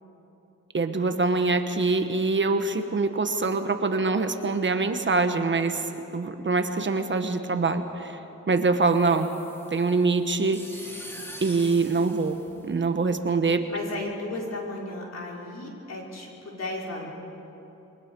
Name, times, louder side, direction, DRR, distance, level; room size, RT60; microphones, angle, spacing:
voice 1, 0.7-8.2 8.5-9.3 9.7-10.7 11.4-12.4 12.6-13.6, right 3 dB, 40° right, 7 dB, 1.2 m, -24 dB
sound 1, 8.8-13.2, equal, 10° left, 2.3 m, -44 dB
voice 2, 13.7-17.1, left 2 dB, 60° left, -2 dB, 4.6 m, -34 dB
28.0 x 23.0 x 5.3 m, 3.0 s
wide cardioid pair, 130°, 30 cm